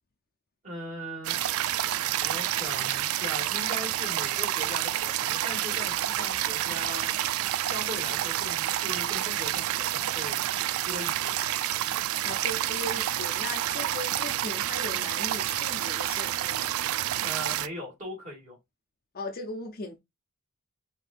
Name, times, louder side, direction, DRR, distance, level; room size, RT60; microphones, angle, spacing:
voice 1, 0.6-1.4 2.2-7.1 7.6-10.4 10.8-11.3 17.2-18.6, equal, 35° right, 2.1 m, -39 dB
sound 1, 1.2-17.7, right 13 dB, 85° right, 0.3 m, -29 dB
voice 2, 12.2-16.8 19.1-20.0, left 2 dB, 45° left, 0.6 m, -38 dB
5.0 x 2.8 x 2.4 m
head